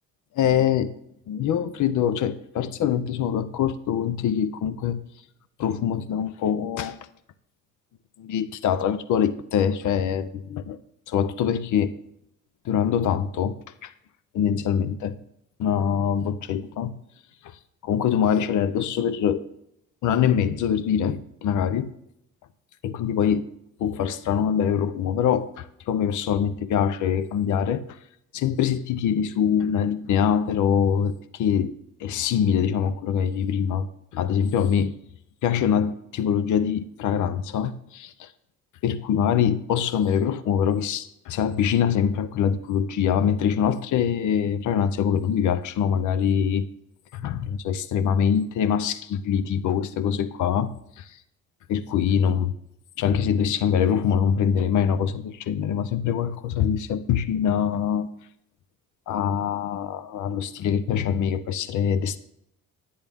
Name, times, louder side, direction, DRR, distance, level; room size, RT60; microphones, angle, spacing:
voice 1, 0.4-0.9 1.3-5.0 5.6-7.0 8.2-10.8 11.1-11.9 12.6-13.5 13.8-13.9 14.3-15.2 15.6-16.9 17.4-17.5 17.8-19.4 20.0-21.9 22.8-23.4 23.8-27.8 28.3-31.7 32.0-34.9 35.4-38.3 38.8-46.7 47.1-51.2 51.7-52.5 53.0-58.1 59.1-62.2, left 8 dB, 70° left, 0.7 m, -24 dB
10.5 x 9.5 x 3.6 m
cardioid pair, 105°, 32 cm